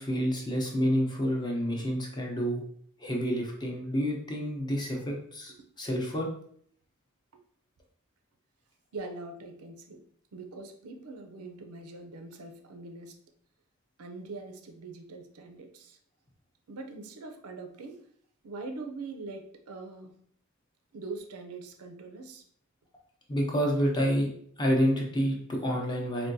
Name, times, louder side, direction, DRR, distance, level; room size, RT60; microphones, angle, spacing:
voice 1, 0.0-2.6 3.0-5.5 5.8-6.3 23.3-24.3 24.6-26.3, equal, 20° left, -1 dB, 0.6 m, -28 dB
voice 2, 8.9-10.0 10.3-13.2 14.0-16.0 16.7-18.0 18.4-20.2 20.9-22.4, right 3 dB, 90° right, 5 dB, 0.5 m, -42 dB
3.6 x 2.2 x 2.6 m, 0.62 s
head